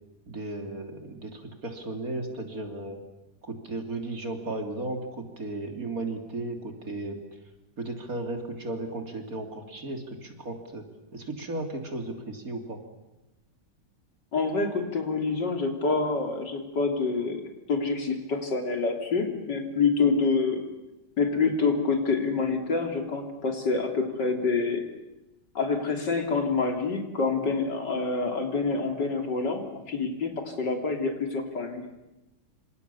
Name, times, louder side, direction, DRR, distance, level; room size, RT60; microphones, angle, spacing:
voice 1, 0.3-3.0 3.4-7.2 7.8-10.8 11.1-12.8, right 2 dB, 50° right, 5 dB, 3.5 m, -35 dB
voice 2, 14.3-17.4 17.7-20.6 21.2-24.8 25.6-31.9, left 4 dB, 75° left, 4 dB, 3.9 m, -27 dB
27.5 x 26.5 x 7.1 m, 0.97 s
omnidirectional pair, 1.9 m